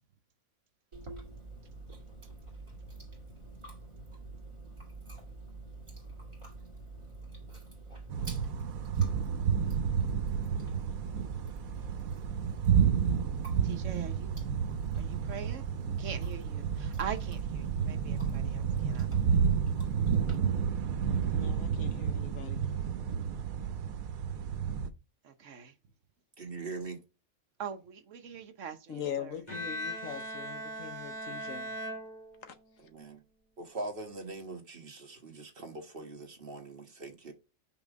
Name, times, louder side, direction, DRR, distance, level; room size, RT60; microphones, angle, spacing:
Chewing mastication, 0.9-20.4, right 2 dB, 20° right, 2.0 m, -47 dB
sound 1, 8.1-24.9, right 7 dB, 85° right, 1.1 m, -30 dB
voice 1, 13.6-14.4 15.0-15.7 16.0-19.4 25.2-25.8 27.6-29.4, right 7 dB, 65° right, 1.1 m, -43 dB
voice 2, 21.3-22.7 28.9-31.7, left 9 dB, 70° left, 1.2 m, -41 dB
voice 3, 26.4-27.0 32.8-33.2 33.6-37.3, right 3 dB, 40° right, 1.4 m, -42 dB
Bowed string instrument, 29.5-32.8, equal, 30° left, 2.4 m, -39 dB
5.8 x 3.9 x 5.1 m
omnidirectional pair, 1.5 m